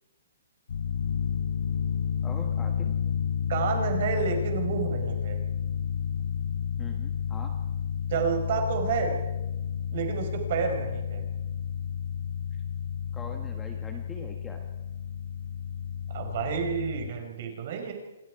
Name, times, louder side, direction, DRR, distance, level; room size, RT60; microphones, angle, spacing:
sound 1, 0.7-17.1, left 7 dB, 65° left, 3.8 m, -31 dB
voice 1, 2.2-2.9 6.8-7.5 12.5-12.6 13.1-14.7, left 4 dB, 5° left, 3 dB, 1.3 m, -43 dB
voice 2, 3.5-5.4 8.1-9.2 9.9-11.2 16.1-17.9, right 6 dB, 35° right, 4 dB, 4.8 m, -29 dB
28.0 x 26.0 x 4.8 m, 1.1 s
hypercardioid pair, 180°, 0 cm